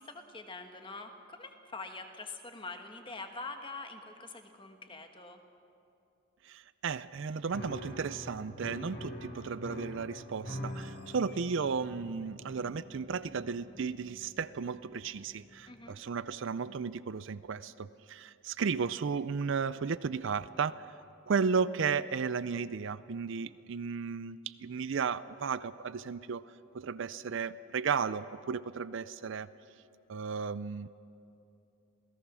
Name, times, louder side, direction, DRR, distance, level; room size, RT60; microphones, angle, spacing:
voice 1, 0.0-5.4 15.7-16.0, left 3 dB, 25° left, 5 dB, 1.4 m, -44 dB
voice 2, 6.4-20.9 21.3-26.5 26.7-29.5 30.1-30.9, right 5 dB, 60° right, 16 dB, 0.4 m, -34 dB
Piano, 7.5-16.0, left 1 dB, 50° left, 3.8 m, -45 dB
27.5 x 17.0 x 6.2 m, 2.7 s
head